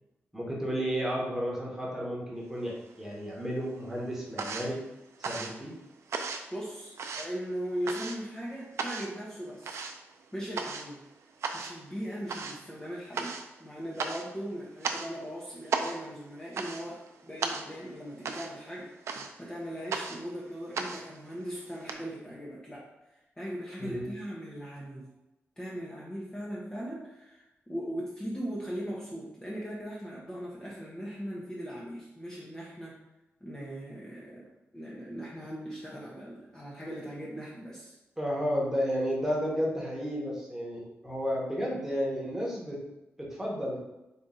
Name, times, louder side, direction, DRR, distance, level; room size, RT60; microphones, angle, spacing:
voice 1, 0.3-4.8 5.2-5.7 23.8-24.1 38.2-42.8 43.2-43.8, equal, 10° right, -4 dB, 1.1 m, -32 dB
sound 1, 2.6-3.4 3.7-21.9, right 5 dB, 80° right, 0.4 m, -37 dB
voice 2, 6.5-9.8 10.3-11.1 11.5-19.0 19.4-22.9 23.4-25.1 25.6-33.0 33.4-38.0, equal, 15° left, -5 dB, 0.7 m, -39 dB
4.1 x 2.6 x 3.7 m, 0.96 s
wide cardioid pair, 120°, 5 cm